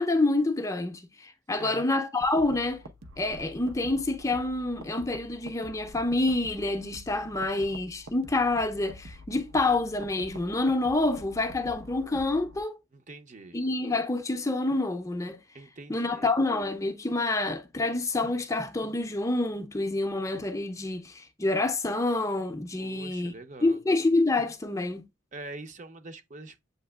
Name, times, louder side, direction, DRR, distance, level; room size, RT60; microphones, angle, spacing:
voice 1, 0.0-2.8 3.2-12.8 13.5-15.4 15.9-23.3 23.6-25.0, left 2 dB, 15° left, 0.5 m, -27 dB
sound 1, 2.2-12.6, equal, 85° right, 0.8 m, -47 dB
voice 2, 12.9-13.6 15.5-16.3 22.8-23.8 25.3-26.6, right 2 dB, 40° right, 0.6 m, -44 dB
7.8 x 2.8 x 2.2 m
head